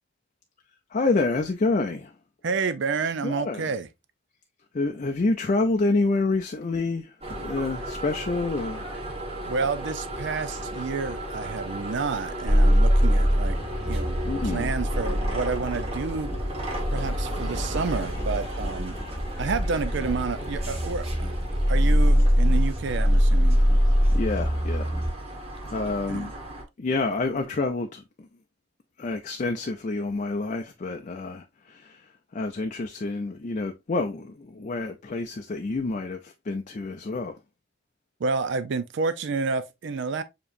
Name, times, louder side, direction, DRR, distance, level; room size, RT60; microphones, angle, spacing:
voice 1, 0.9-2.1 3.2-3.7 4.7-8.9 14.2-14.7 24.1-24.9 25.7-26.3 26.8-28.3 29.0-32.0 32.3-37.4, left 3 dB, 40° left, 0.4 m, -28 dB
voice 2, 2.4-3.9 9.4-13.6 13.9-14.2 14.4-16.3 16.9-19.0 19.4-21.3 21.7-23.6 26.1-26.3 38.2-40.2, right 4 dB, 65° right, 0.5 m, -29 dB
sound 1, 7.2-26.6, right 1 dB, 30° right, 1.4 m, -35 dB
sound 2, 12.5-25.1, equal, 15° left, 1.0 m, -23 dB
7.0 x 3.0 x 2.5 m
head